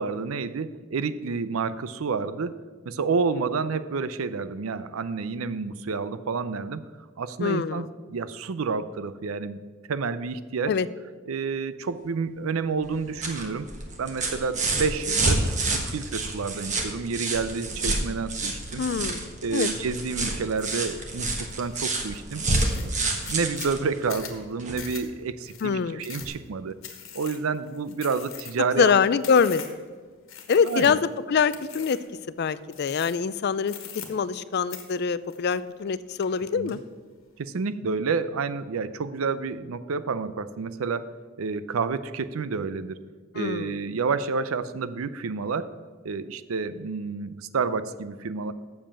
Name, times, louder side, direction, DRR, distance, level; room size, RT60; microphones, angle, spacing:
voice 1, 0.0-2.6 2.9-6.8 7.2-9.6 9.9-10.7 11.3-13.7 14.0-18.8 19.4-22.4 22.8-26.8 27.1-28.9 29.3-29.4 30.6-31.0 36.5-36.8 37.4-41.1 41.4-43.0 43.3-45.7 46.0-48.5, right 4 dB, 90° right, 14 dB, 0.5 m, -29 dB
voice 2, 7.4-7.8 10.7-10.9 18.8-19.2 19.5-19.7 25.6-26.0 28.8-29.6 30.5-32.0 32.4-33.7 34.1-36.8 43.3-43.8, left 6 dB, 50° left, 16 dB, 0.4 m, -24 dB
sound 1, 12.8-24.9 26.2-26.3, right 2 dB, 35° right, 1.4 m, -29 dB
sound 2, 20.6-20.8 21.3-21.8 22.1-22.2 22.5-29.9 30.3-31.1 31.5-32.1 32.7-33.3 33.6-34.4 34.7-35.9 36.2-36.8, left 9 dB, 75° left, 1.4 m, -42 dB
7.5 x 7.1 x 7.1 m, 1.6 s
head